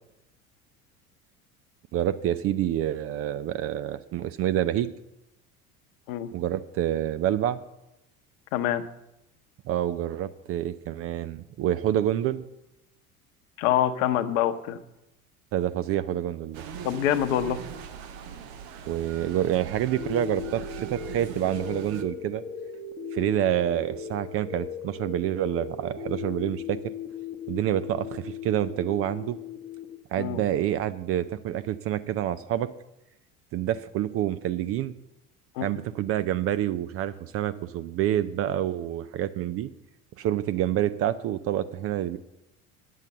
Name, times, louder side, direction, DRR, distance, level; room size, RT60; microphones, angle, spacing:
voice 1, 1.9-4.9 6.3-7.6 9.7-12.4 15.5-16.6 18.9-22.4 23.1-26.8 27.5-29.4 30.1-32.7 33.5-34.9 35.6-39.7 40.2-42.2, right 12 dB, 35° right, 15 dB, 0.4 m, -27 dB
voice 2, 8.5-8.9 13.6-14.8 16.8-17.6 30.2-30.4 35.6-35.7, left 11 dB, 60° left, 12 dB, 0.9 m, -25 dB
sound 1, 16.5-22.0, right 7 dB, 55° right, 1.1 m, -40 dB
sound 2, 20.0-30.0, left 7 dB, 15° left, 0.9 m, -38 dB
9.3 x 7.4 x 6.7 m, 0.89 s
figure-of-eight pair, 70°, 45 cm